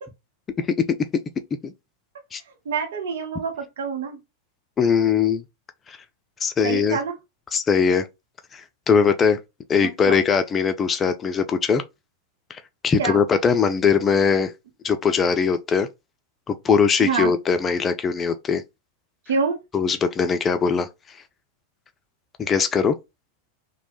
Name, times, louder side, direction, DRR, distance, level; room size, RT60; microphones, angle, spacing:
voice 1, 2.6-4.2 6.6-7.2 9.8-10.2 13.0-13.2 17.0-17.3 19.3-19.6, right 5 dB, 60° right, 0.9 m, -26 dB
voice 2, 4.8-5.4 5.9-6.0 6.4-7.0 7.5-8.1 8.5-9.4 9.7-11.8 12.5-14.5 14.8-15.9 16.5-18.6 19.7-21.2 22.4-23.0, left 6 dB, 20° left, 0.4 m, -21 dB
3.0 x 2.1 x 3.0 m
figure-of-eight pair, 90°, 0 cm